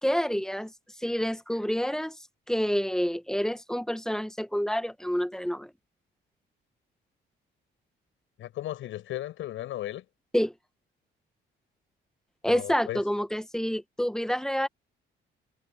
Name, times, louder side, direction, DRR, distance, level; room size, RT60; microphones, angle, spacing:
voice 1, 0.0-0.7 1.0-2.2 2.5-5.7 10.3-10.5 12.4-14.7, equal, 5° left, 1.5 m, -28 dB
voice 2, 8.4-10.0 12.4-13.0, left 13 dB, 85° left, 6.3 m, -35 dB
cardioid pair, 90°, 20 cm